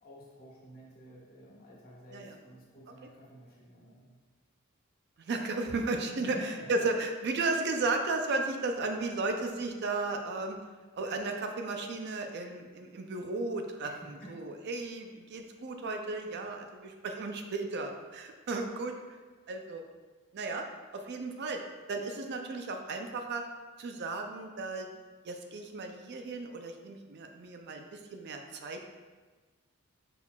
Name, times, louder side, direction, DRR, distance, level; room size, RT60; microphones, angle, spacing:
voice 1, 0.0-4.1 6.2-6.8 13.8-14.3, equal, 45° left, -5 dB, 1.3 m, -50 dB
voice 2, 5.2-10.6 11.0-18.9 19.5-19.9 20.3-20.7 20.9-21.6 21.9-23.4 23.8-24.9 25.2-28.8, right 3 dB, 50° right, 4 dB, 0.4 m, -34 dB
5.5 x 4.2 x 2.3 m, 1.4 s
head